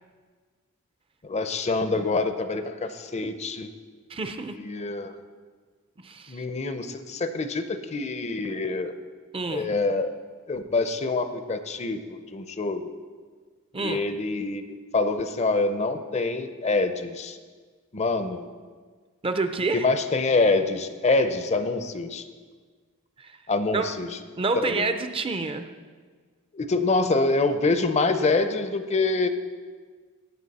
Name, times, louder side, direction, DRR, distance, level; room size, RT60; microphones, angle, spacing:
voice 1, 1.2-3.7 4.5-5.1 6.3-9.0 9.5-10.2 10.5-12.9 13.8-17.4 17.9-18.4 19.7-22.2 23.5-24.2 24.6-24.8 26.5-29.3, left 3 dB, 30° left, 10 dB, 0.6 m, -26 dB
voice 2, 4.1-4.5 6.0-6.4 9.3-9.7 13.7-14.0 19.2-19.9 23.2-23.3 23.7-23.9 24.4-25.7, right 3 dB, 25° right, 8 dB, 0.5 m, -28 dB
17.5 x 8.0 x 4.1 m, 1.5 s
head